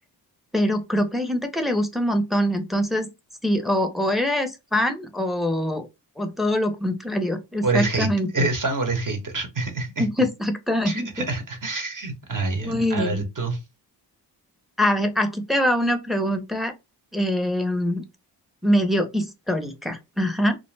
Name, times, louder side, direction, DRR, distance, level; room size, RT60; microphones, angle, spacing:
voice 1, 0.5-3.1 3.4-5.9 6.2-8.3 10.0-11.1 12.6-13.3 14.8-16.7 17.1-18.0 18.6-20.6, equal, ahead, 0.5 m, -24 dB
voice 2, 7.6-10.1 10.8-13.6, right 3 dB, 45° right, 0.9 m, -26 dB
2.5 x 2.0 x 3.2 m
cardioid pair, 75°, 44 cm